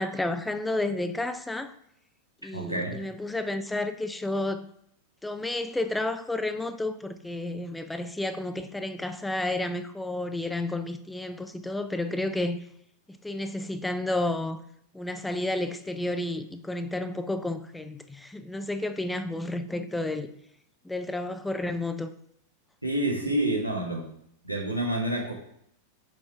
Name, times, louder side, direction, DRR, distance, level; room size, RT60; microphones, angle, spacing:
voice 1, 0.0-1.7 2.4-4.7 5.2-12.6 13.1-14.6 14.9-20.3 20.9-22.1, left 2 dB, 5° left, 0.4 m, -31 dB
voice 2, 2.5-3.0 22.8-24.1 24.4-25.3, right 1 dB, 90° right, 1.6 m, -28 dB
5.5 x 5.2 x 4.7 m
figure-of-eight pair, 90°, 0 cm